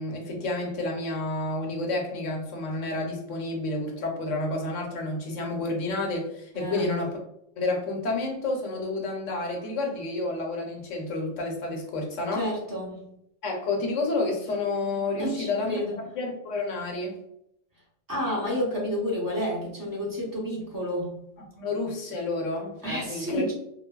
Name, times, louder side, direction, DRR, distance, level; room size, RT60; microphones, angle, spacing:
voice 1, 0.0-7.1 7.6-12.5 13.4-15.8 16.1-17.2 21.6-23.5, left 2 dB, 75° left, 1 dB, 1.1 m, -30 dB
voice 2, 6.5-7.0 12.3-13.1 15.2-16.0 18.1-21.1 22.8-23.5, equal, 20° right, -4 dB, 0.7 m, -30 dB
3.2 x 2.2 x 2.2 m, 0.77 s
omnidirectional pair, 1.3 m